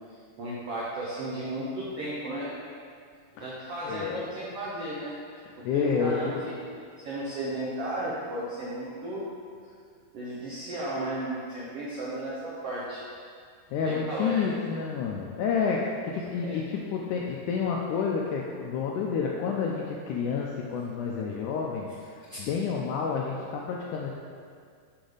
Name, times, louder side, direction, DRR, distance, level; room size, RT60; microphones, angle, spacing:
voice 1, 0.4-2.5 3.4-5.1 5.6-6.6 7.0-9.2 10.1-13.0 13.8-14.5 16.3-16.8 22.3-22.5, right 1 dB, 75° right, -7 dB, 1.4 m, -34 dB
voice 2, 3.9-4.2 5.6-6.4 13.7-24.1, left 6 dB, 90° left, -1 dB, 1.7 m, -29 dB
6.7 x 6.1 x 3.9 m, 2.1 s
omnidirectional pair, 4.2 m